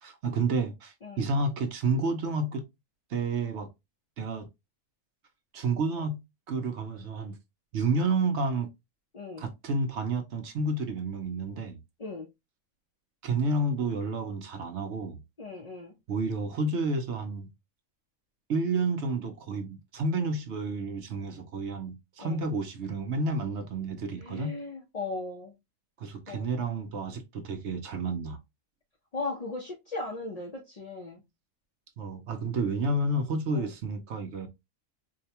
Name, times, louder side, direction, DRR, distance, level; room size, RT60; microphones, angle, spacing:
voice 1, 0.0-2.6 3.1-3.7 4.2-4.5 5.5-6.2 6.5-7.4 7.7-8.7 9.4-11.8 13.2-15.2 16.1-17.5 18.5-24.6 26.0-28.4 32.0-34.5, right 3 dB, 60° right, 0.9 m, -30 dB
voice 2, 15.4-15.9 22.2-22.4 24.2-25.5 26.3-26.5 29.1-31.2 33.5-33.7, left 3 dB, 45° left, 0.5 m, -37 dB
4.7 x 2.2 x 2.8 m
omnidirectional pair, 1.5 m